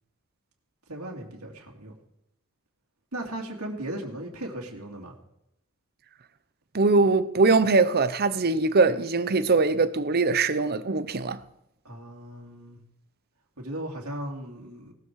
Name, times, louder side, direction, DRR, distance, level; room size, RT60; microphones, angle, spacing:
voice 1, 0.9-1.9 3.1-5.1 11.8-12.8 13.6-14.9, right 1 dB, 75° right, 2.9 m, -37 dB
voice 2, 6.7-11.4, right 3 dB, 45° right, 0.8 m, -22 dB
18.0 x 13.0 x 4.8 m
head